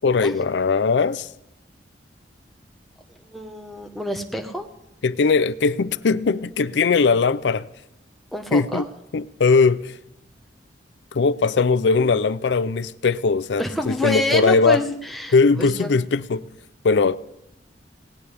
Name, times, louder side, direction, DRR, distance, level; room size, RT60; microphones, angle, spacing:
voice 1, 0.0-1.3 5.0-7.7 8.5-8.8 9.1-10.0 11.1-14.8 15.3-16.5 16.8-17.2, left 4 dB, 85° left, 0.5 m, -20 dB
voice 2, 3.2-4.7 8.3-8.9 13.6-15.9, left 1 dB, ahead, 1.1 m, -27 dB
18.0 x 18.0 x 3.4 m
head